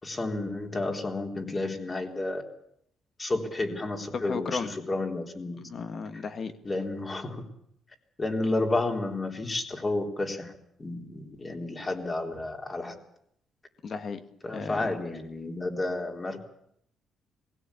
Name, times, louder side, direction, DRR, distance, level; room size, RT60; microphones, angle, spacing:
voice 1, 0.0-2.4 3.2-5.6 6.6-7.4 8.2-10.5 10.8-12.9 14.4-16.4, left 2 dB, 30° left, 3 dB, 3.7 m, -31 dB
voice 2, 4.1-4.7 5.6-6.5 13.8-14.2 14.5-14.9, left 5 dB, 50° left, 9 dB, 1.9 m, -34 dB
20.5 x 16.5 x 8.5 m, 0.71 s
cardioid pair, 90°, 0 cm